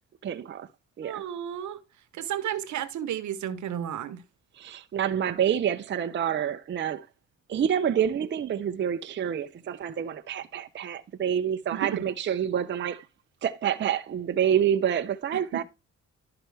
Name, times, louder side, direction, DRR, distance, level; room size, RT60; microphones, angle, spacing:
voice 1, 0.2-0.7 1.0-1.2 4.5-7.1 7.5-13.1 13.4-15.6, right 9 dB, 40° right, 0.6 m, -27 dB
voice 2, 1.0-1.8 2.1-4.2 11.7-12.0 15.3-15.6, right 10 dB, 70° right, 1.0 m, -33 dB
11.5 x 5.8 x 3.3 m
cardioid pair, 90°, 30 cm